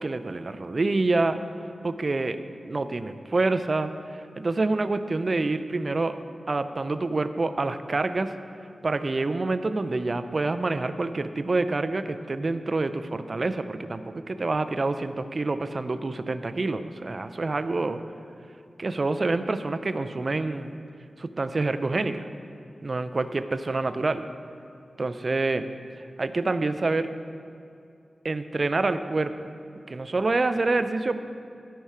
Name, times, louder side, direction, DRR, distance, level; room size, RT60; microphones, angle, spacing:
voice 1, 0.0-1.4 1.8-2.4 2.6-3.9 4.4-6.2 6.5-8.3 8.8-18.0 18.8-20.8 21.2-22.3 22.8-24.2 25.0-25.6 26.0-27.1 28.2-29.3 29.9-31.2, right 3 dB, 50° right, 10 dB, 0.5 m, -27 dB
13.0 x 5.6 x 4.8 m, 2.5 s
cardioid pair, 50°, 0 cm